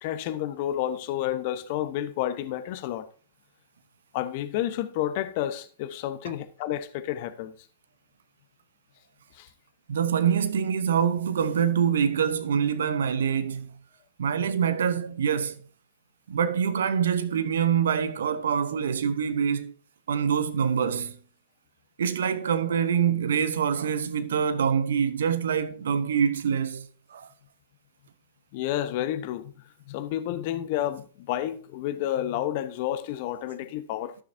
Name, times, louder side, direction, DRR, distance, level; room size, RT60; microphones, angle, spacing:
voice 1, 0.0-3.1 4.1-7.5 9.3-9.5 28.5-29.5 29.9-34.2, left 12 dB, 50° left, 1.0 m, -30 dB
voice 2, 9.9-13.7 14.2-15.6 16.3-19.7 20.1-21.2 22.0-27.3, right 7 dB, 70° right, 0.9 m, -25 dB
13.5 x 6.3 x 2.7 m
hypercardioid pair, 105°, 0 cm